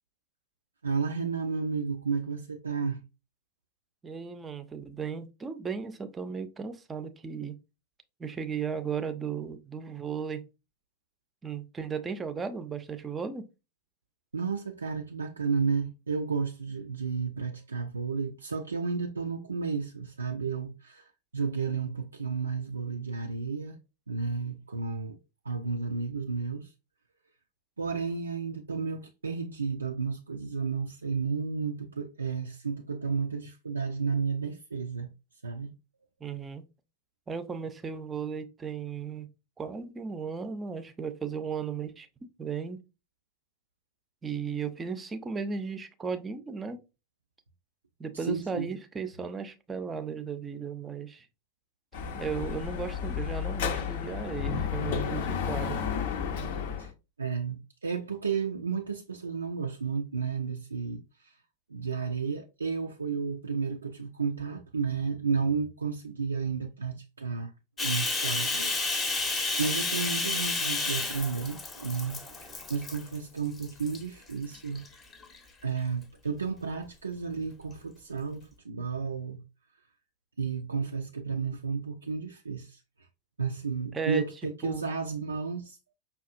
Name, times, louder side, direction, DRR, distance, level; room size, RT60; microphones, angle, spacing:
voice 1, 0.8-3.0 14.3-23.8 24.1-25.2 25.4-26.7 27.8-35.1 35.4-35.7 48.1-48.7 56.8-56.9 57.2-61.4 61.7-67.5 67.8-69.3 69.6-74.8 75.6-79.4 80.4-83.1 83.4-85.8, right 5 dB, 75° right, 0.3 m, -32 dB
voice 2, 4.0-7.6 8.2-10.4 11.4-13.4 36.2-36.6 37.3-39.3 39.6-42.8 44.2-46.8 48.0-51.3 52.1-55.8 83.9-84.2 84.6-84.8, right 6 dB, 15° right, 0.5 m, -35 dB
Dog / Motorcycle, 51.9-56.9, left 7 dB, 55° left, 0.5 m, -32 dB
Bathtub (filling or washing), 67.8-73.2 73.6-74.0 74.5-75.4, left 3 dB, 20° left, 0.7 m, -31 dB
5.6 x 2.3 x 2.4 m
figure-of-eight pair, 90°, 0 cm